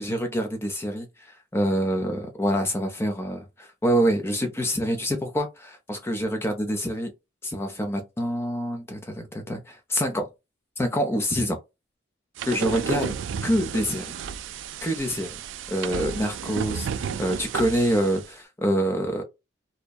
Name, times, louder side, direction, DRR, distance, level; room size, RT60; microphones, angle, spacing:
voice 1, 0.0-7.1 7.4-10.3 10.8-11.6 12.4-13.1 13.4-14.1 14.8-15.4 15.7-19.2, equal, 15° left, 0.5 m, -26 dB
sound 1, 12.4-18.3, right 7 dB, 75° right, 0.3 m, -32 dB
2.7 x 2.1 x 2.2 m
head